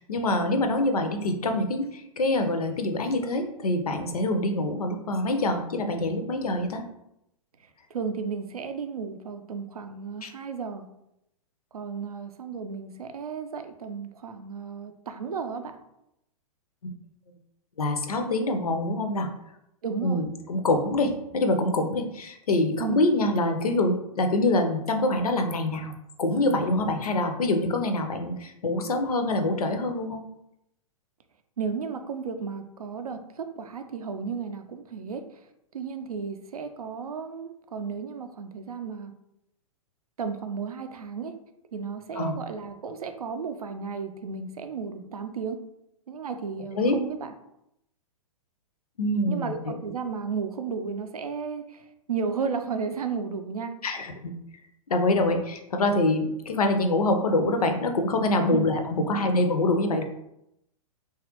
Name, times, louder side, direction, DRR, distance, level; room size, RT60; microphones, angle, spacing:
voice 1, 0.0-6.8 10.2-10.3 16.8-16.9 17.8-19.3 20.0-25.9 26.2-30.3 42.2-42.3 46.8-47.0 49.0-49.8 53.8-54.3 54.9-60.0, left 2 dB, 85° left, 5 dB, 0.5 m, -25 dB
voice 2, 7.6-10.9 11.7-15.8 19.8-20.2 22.8-23.0 31.6-35.4 35.7-39.1 40.2-41.3 41.7-45.6 46.1-47.3 49.3-53.8 58.5-58.7, right 5 dB, 85° right, 8 dB, 0.4 m, -33 dB
3.0 x 2.3 x 2.9 m, 0.82 s
hypercardioid pair, 115°, 19 cm